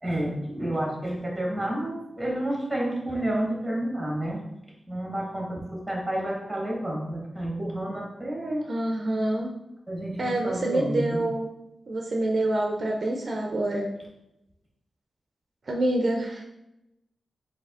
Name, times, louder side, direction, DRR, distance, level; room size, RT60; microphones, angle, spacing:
voice 1, 0.0-4.4 4.9-8.7 9.9-11.2, right 1 dB, 5° right, -3 dB, 1.3 m, -30 dB
voice 2, 8.7-9.5 10.2-11.5 11.9-13.9 15.7-16.4, right 1 dB, 45° right, 1 dB, 0.4 m, -26 dB
7.5 x 2.7 x 2.4 m, 0.88 s
wide cardioid pair, 140°, 0 cm